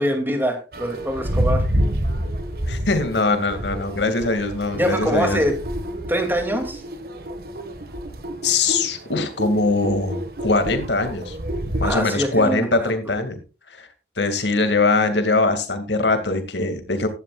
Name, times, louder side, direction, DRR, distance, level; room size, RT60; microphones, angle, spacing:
voice 1, 0.0-1.6 4.7-5.5 6.1-6.8 11.8-12.9, equal, 10° right, 5 dB, 2.6 m, -24 dB
sound 1, 0.7-12.0, equal, 55° right, 1.6 m, -28 dB
voice 2, 2.7-5.4 8.4-11.4 11.8-13.4 13.8-13.9 14.2-17.1, left 3 dB, 85° left, 8 dB, 2.3 m, -22 dB
15.5 x 12.0 x 2.4 m, 0.32 s
head